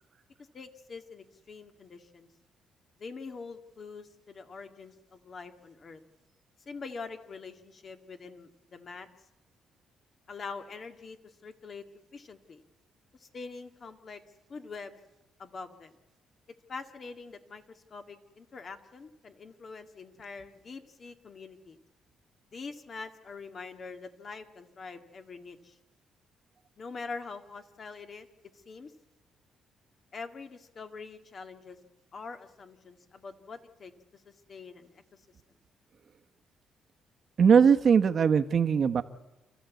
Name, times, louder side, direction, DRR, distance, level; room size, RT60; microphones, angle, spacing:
voice 1, 0.5-2.3 3.0-6.0 6.7-9.1 10.3-11.8 12.1-12.6 13.2-14.2 14.5-15.0 15.4-15.9 16.7-21.8 22.5-25.8 26.8-28.3 28.5-28.9 30.1-31.8 32.1-33.9 34.5-34.9, left 4 dB, 45° left, 7 dB, 2.0 m, -44 dB
voice 2, 37.4-39.0, right 6 dB, 50° right, 7 dB, 1.2 m, -21 dB
28.5 x 14.0 x 8.3 m, 1.0 s
cardioid pair, 90°, 0 cm